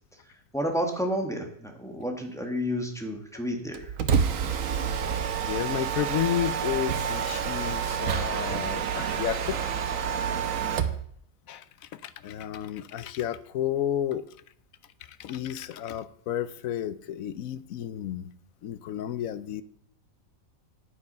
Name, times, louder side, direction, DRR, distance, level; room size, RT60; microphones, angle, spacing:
voice 1, 0.5-3.9, equal, ahead, 2 dB, 1.6 m, -30 dB
Mechanisms, 3.7-11.0, right 7 dB, 80° right, 1.2 m, -28 dB
voice 2, 5.5-9.6 11.5-11.6 11.9-14.2 15.2-18.3 18.6-19.6, left 11 dB, 85° left, 15 dB, 1.1 m, -31 dB
9.7 x 8.6 x 5.4 m, 0.63 s
omnidirectional pair, 1.4 m